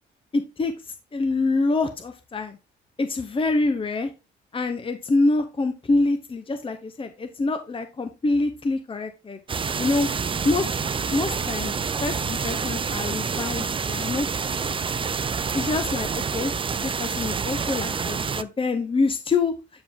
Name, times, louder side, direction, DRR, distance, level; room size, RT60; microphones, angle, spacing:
voice 1, 0.3-2.6 3.0-4.1 4.5-9.4 9.8-10.1 10.4-11.7 12.0-14.8 15.5-16.5 16.8-19.5, left 3 dB, 25° left, 8 dB, 0.9 m, -26 dB
sound 1, 9.5-18.4, right 5 dB, 25° right, 0.5 m, -28 dB
8.7 x 4.9 x 3.6 m, 0.28 s
cardioid pair, 90°, 20 cm